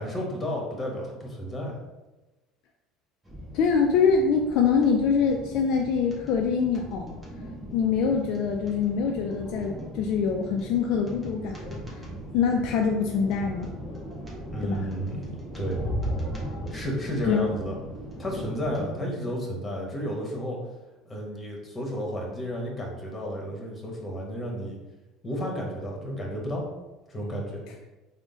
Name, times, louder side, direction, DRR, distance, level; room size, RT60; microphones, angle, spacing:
voice 1, 0.0-1.8 14.5-15.8 16.7-17.8 18.2-20.6 21.0-24.8 25.2-26.6 27.1-27.6, equal, 25° left, -1 dB, 1.2 m, -32 dB
sound 1, 3.2-18.8, equal, 15° right, 1.3 m, -38 dB
voice 2, 3.5-7.1 7.7-11.6 12.3-13.7 14.6-14.9 17.3-17.5, left 6 dB, 65° left, 2 dB, 0.3 m, -24 dB
3.6 x 2.1 x 3.8 m, 1.1 s
hypercardioid pair, 75°, 0 cm